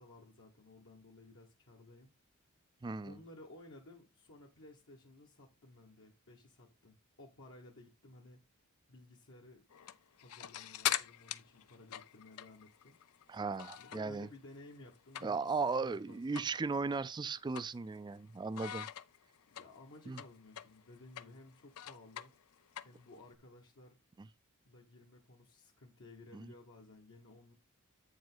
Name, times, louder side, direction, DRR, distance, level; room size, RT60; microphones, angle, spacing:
voice 1, 0.0-2.1 3.0-8.4 8.9-9.6 10.1-13.0 13.8-16.5 19.4-22.3 22.8-24.0 24.6-27.5, left 2 dB, 65° left, 1.3 m, -56 dB
voice 2, 2.8-3.2 13.3-14.3 15.2-18.9 20.1-20.2 26.3-26.5, right 4 dB, 20° right, 0.3 m, -36 dB
sound 1, 9.7-14.2 14.5-15.6 15.9-16.0 16.3-16.6 16.9-18.2 18.5-23.3, left 11 dB, 90° left, 0.5 m, -42 dB
8.1 x 5.1 x 3.8 m
head